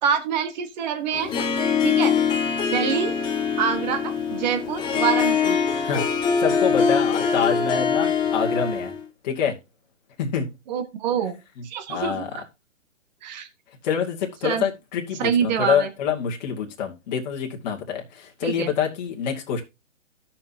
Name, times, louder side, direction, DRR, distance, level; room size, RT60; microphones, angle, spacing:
voice 1, 0.0-1.3 1.8-2.1 2.7-3.1 3.6-5.6 10.7-12.4 13.2-13.5 14.4-14.7 15.2-15.9 18.4-18.7, right 8 dB, 35° right, 1.5 m, -26 dB
Harp, 1.1-9.0, left 6 dB, 15° left, 0.8 m, -23 dB
voice 2, 6.4-8.9 9.2-9.6 10.2-10.5 11.6-12.3 13.8-19.6, left 7 dB, 35° left, 2.1 m, -26 dB
15.5 x 5.9 x 2.8 m
figure-of-eight pair, 135°, 37 cm